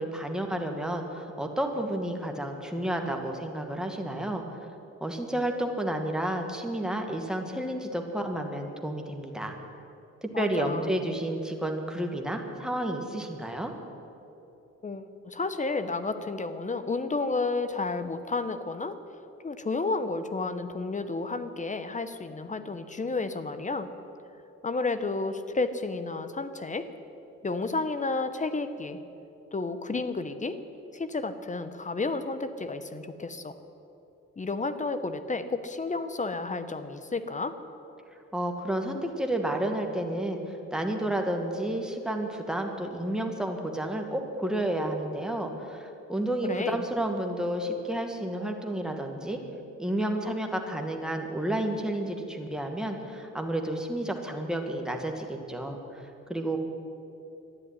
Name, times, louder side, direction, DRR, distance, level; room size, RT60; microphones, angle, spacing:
voice 1, 0.0-4.6 5.0-9.5 10.2-13.7 38.3-49.4 49.8-56.0 56.3-56.6, right 1 dB, ahead, 3 dB, 2.0 m, -31 dB
voice 2, 10.3-10.9 14.8-19.0 19.4-23.9 24.6-26.9 27.4-29.0 29.5-30.6 30.9-33.6 34.4-37.5 46.4-46.8, left 3 dB, 25° left, 11 dB, 1.0 m, -31 dB
13.0 x 10.5 x 9.8 m, 2.9 s
cardioid pair, 90°, 30 cm